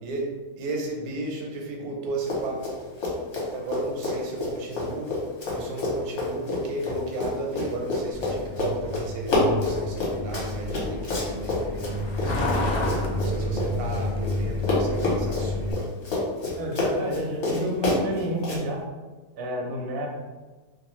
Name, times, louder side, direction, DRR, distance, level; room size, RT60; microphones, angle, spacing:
voice 1, 0.0-2.7 3.5-5.2 5.5-12.7 13.2-15.7, right 2 dB, 85° right, 0 dB, 1.1 m, -34 dB
Run, 2.2-2.8 3.0-14.4 14.6-18.6, left 2 dB, 60° left, 1.0 m, -28 dB
Truck, 8.1-15.7, left 1 dB, 80° left, 0.5 m, -29 dB
voice 2, 16.6-18.9 19.3-20.1, right 1 dB, 65° right, -1 dB, 0.6 m, -30 dB
2.6 x 2.1 x 2.9 m, 1.2 s
omnidirectional pair, 1.5 m